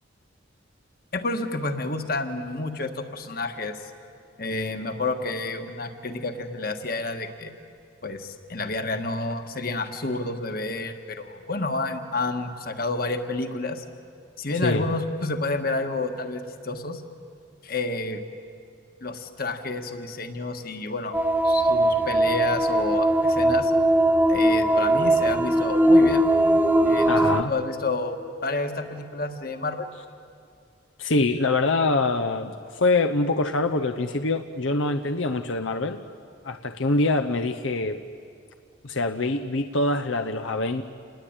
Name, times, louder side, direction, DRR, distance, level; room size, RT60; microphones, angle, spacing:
voice 1, 1.1-3.7 4.4-7.5 8.0-13.8 14.4-17.0 17.6-18.2 19.0-21.2 21.4-23.7 24.3-26.2 26.8-28.2 28.4-29.9, left 2 dB, 50° left, 7 dB, 1.6 m, -30 dB
sound 1, 21.1-27.4, right 1 dB, 10° right, 0.8 m, -20 dB
voice 2, 27.1-27.5 31.0-36.0 36.4-38.0 38.8-40.8, left 2 dB, 80° left, 6 dB, 0.9 m, -24 dB
28.0 x 20.0 x 8.9 m, 2.4 s
head